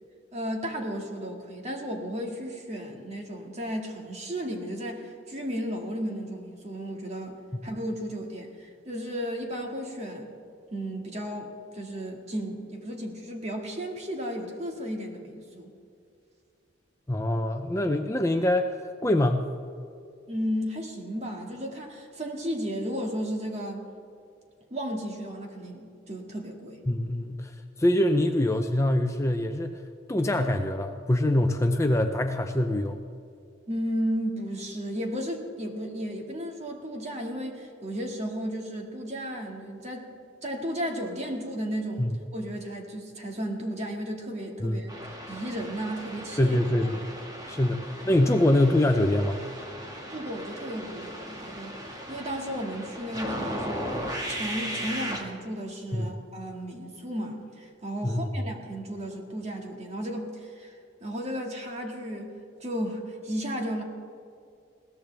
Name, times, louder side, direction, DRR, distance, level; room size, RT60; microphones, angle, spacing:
voice 1, 0.3-10.3 10.7-15.7 20.3-23.9 24.7-26.8 33.7-40.1 40.4-44.9 45.3-46.6 46.8-47.0 50.1-51.8 52.1-53.8 54.3-62.3 62.6-63.8, equal, 35° right, 2 dB, 2.0 m, -34 dB
voice 2, 17.1-18.7 19.0-19.5 26.9-27.5 27.8-29.8 30.1-33.0 42.0-42.1 44.6-44.8 46.4-47.0 47.5-49.4 56.0-56.1 58.0-58.3, left 1 dB, 15° left, 5 dB, 0.6 m, -24 dB
sound 1, 44.9-55.2, equal, 20° right, 1.8 m, -37 dB
21.0 x 17.0 x 3.4 m, 2.4 s
head